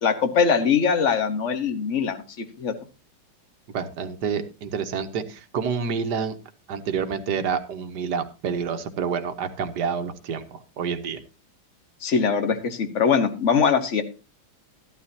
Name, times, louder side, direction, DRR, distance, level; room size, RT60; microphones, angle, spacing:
voice 1, 0.0-2.2 2.6-2.7 12.0-14.0, left 6 dB, 40° left, 9 dB, 1.3 m, -22 dB
voice 2, 3.7-6.4 6.7-11.2, right 6 dB, 60° right, 8 dB, 1.5 m, -28 dB
13.0 x 12.0 x 2.8 m, 0.31 s
omnidirectional pair, 2.3 m